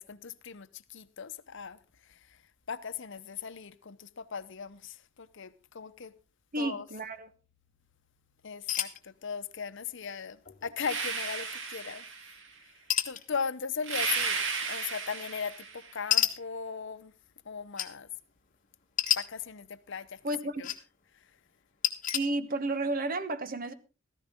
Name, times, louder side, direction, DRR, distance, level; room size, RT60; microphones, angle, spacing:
voice 1, 0.0-1.8 2.1-2.4 2.7-6.1 6.6-6.9 8.4-12.0 13.0-17.1 17.4-18.1 19.2-20.2 20.6-20.7 21.1-21.2, left 6 dB, 65° left, 0.8 m, -38 dB
voice 2, 6.5-7.3 20.2-20.7 22.1-23.7, right 2 dB, 45° right, 1.1 m, -32 dB
sound 1, 8.7-9.0 10.0-10.1 10.4-10.8 12.9-13.2 14.5-14.6 16.1-16.3 17.8-17.9 19.0-19.2 20.3-20.8 21.8-22.2, left 10 dB, 40° left, 1.4 m, -28 dB
sound 2, 10.8-12.5 13.8-15.9, right 5 dB, 65° right, 2.2 m, -34 dB
15.0 x 14.0 x 3.6 m
head